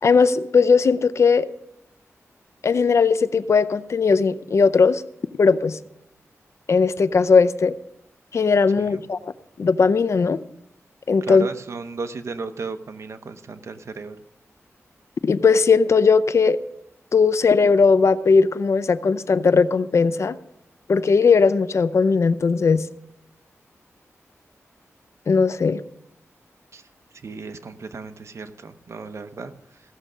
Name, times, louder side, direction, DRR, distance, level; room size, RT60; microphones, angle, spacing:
voice 1, 0.0-1.5 2.6-5.0 5.4-5.8 6.7-7.7 8.3-9.3 9.6-10.4 11.1-11.5 15.2-16.6 17.1-20.4 20.9-22.9 25.3-25.8, left 5 dB, 60° left, 15 dB, 0.5 m, -18 dB
voice 2, 11.2-14.2 26.7-26.8 27.2-29.8, right 4 dB, 60° right, 10 dB, 0.8 m, -35 dB
16.0 x 6.6 x 6.2 m, 0.82 s
wide cardioid pair, 80°, 5 cm